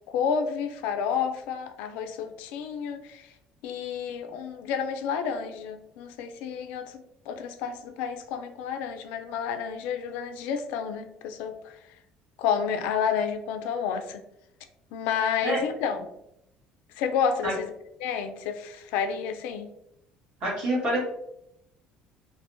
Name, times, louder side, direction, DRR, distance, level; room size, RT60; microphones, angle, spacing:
voice 1, 0.1-3.3 3.6-7.0 7.3-11.8 12.4-14.2 14.9-16.1 17.0-17.7 18.0-19.7, left 7 dB, 90° left, 7 dB, 0.3 m, -30 dB
voice 2, 20.4-21.0, right 1 dB, 50° right, -6 dB, 1.3 m, -26 dB
3.3 x 2.1 x 2.5 m, 0.81 s
cardioid pair, 170°, 3 cm